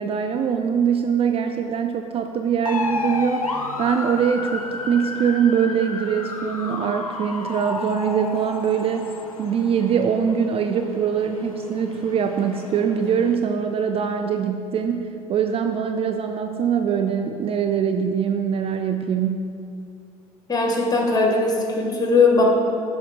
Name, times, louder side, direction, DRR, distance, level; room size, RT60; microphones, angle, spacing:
voice 1, 0.0-9.1 9.4-19.5, right 7 dB, 35° right, 6 dB, 0.4 m, -23 dB
sound 1, 2.7-13.3, left 3 dB, 90° left, 0.4 m, -32 dB
voice 2, 20.5-22.4, left 3 dB, 20° left, -1 dB, 1.6 m, -19 dB
7.7 x 5.0 x 4.7 m, 2.6 s
figure-of-eight pair, 60°, 17 cm